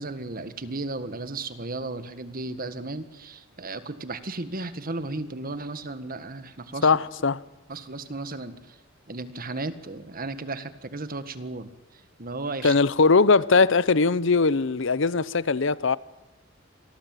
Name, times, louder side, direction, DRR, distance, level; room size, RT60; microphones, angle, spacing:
voice 1, 0.0-7.0 7.7-8.8 9.1-12.7 13.6-13.7, right 2 dB, 45° right, 1.7 m, -35 dB
voice 2, 6.8-7.4 12.6-16.0, left 4 dB, 65° left, 0.8 m, -20 dB
27.0 x 19.0 x 9.1 m
head